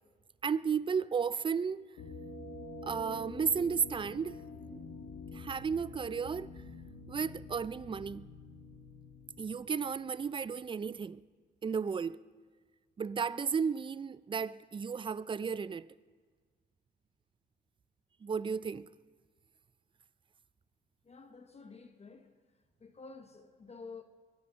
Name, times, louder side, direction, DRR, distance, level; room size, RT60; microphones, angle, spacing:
voice 1, 0.4-1.9 2.8-4.4 4.7-4.8 5.3-6.5 7.1-8.3 9.4-11.2 11.6-12.2 13.0-15.9 18.2-18.9, right 6 dB, 25° right, 0.4 m, -33 dB
sound 1, 2.0-10.6, left 3 dB, 80° left, 2.3 m, -48 dB
voice 2, 21.0-22.3 22.8-24.0, left 4 dB, 30° left, 1.0 m, -50 dB
22.5 x 9.6 x 5.7 m
cardioid pair, 90°, 20 cm